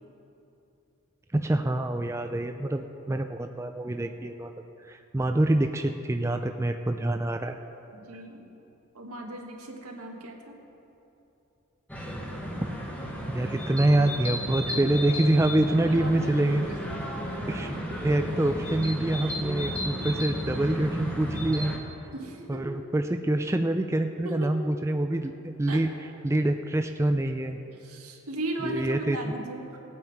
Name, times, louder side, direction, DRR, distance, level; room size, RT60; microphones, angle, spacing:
voice 1, 1.3-4.5 4.8-7.6 13.3-16.7 17.5-17.8 18.0-21.7 22.5-25.9 26.2-27.6 28.6-29.2, right 1 dB, 10° right, 6 dB, 0.3 m, -26 dB
voice 2, 7.9-8.6 8.9-10.6 14.7-14.8 15.7-16.7 22.1-22.7 24.2-24.6 25.7-25.9 27.7-29.8, right 2 dB, 90° right, 1 dB, 1.6 m, -37 dB
sound 1, 11.9-21.8, equal, 5° left, 1.1 m, -33 dB
18.5 x 8.9 x 4.6 m, 2.9 s
head